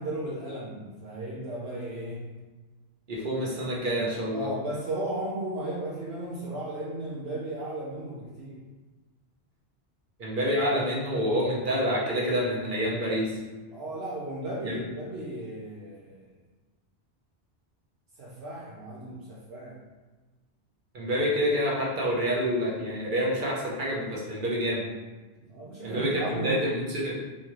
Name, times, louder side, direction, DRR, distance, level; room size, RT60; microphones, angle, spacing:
voice 1, 0.0-2.4 4.3-8.6 13.7-16.3 18.2-19.8 25.4-26.7, right 1 dB, 70° right, -5 dB, 0.9 m, -35 dB
voice 2, 3.1-4.5 10.2-13.4 14.6-14.8 20.9-24.9 25.8-27.2, equal, 50° right, -4 dB, 1.2 m, -27 dB
4.2 x 3.6 x 3.1 m, 1.3 s
omnidirectional pair, 1.1 m